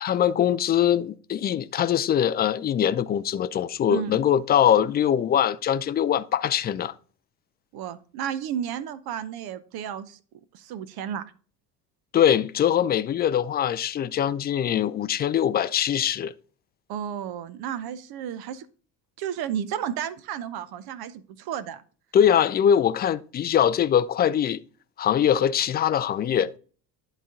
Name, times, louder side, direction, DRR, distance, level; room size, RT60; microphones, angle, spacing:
voice 1, 0.0-6.9 12.1-16.3 22.1-24.6 25.0-26.5, left 9 dB, 20° left, 0.4 m, -22 dB
voice 2, 7.7-10.2 10.5-11.3 16.9-18.7 19.2-21.8, right 9 dB, 50° right, 0.8 m, -32 dB
11.0 x 4.1 x 3.7 m
figure-of-eight pair, 60°, 49 cm